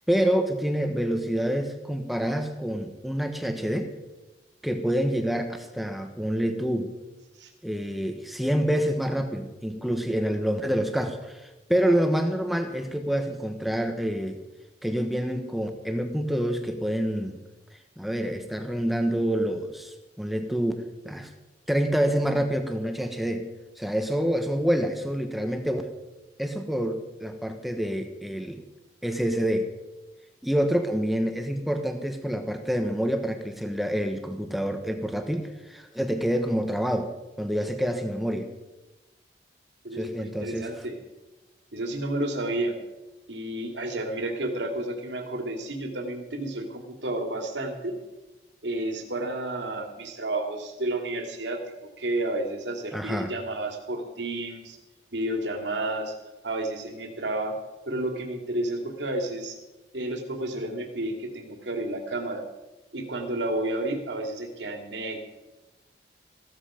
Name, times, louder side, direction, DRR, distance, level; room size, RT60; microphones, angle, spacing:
voice 1, 0.1-3.9 4.6-6.9 7.6-14.4 14.8-17.4 18.0-20.7 21.0-21.3 21.7-23.5 23.8-25.8 26.4-28.6 29.0-29.7 30.4-37.1 37.4-38.5 39.9-40.7 52.9-53.3, equal, ahead, 6 dB, 1.2 m, -27 dB
voice 2, 39.8-41.0 41.7-42.8 43.3-48.0 48.6-51.6 52.0-54.8 55.1-56.1 56.4-57.6 57.9-59.5 59.9-62.4 62.9-65.2, right 1 dB, 80° right, 3 dB, 2.6 m, -31 dB
16.0 x 13.5 x 5.1 m, 1.1 s
head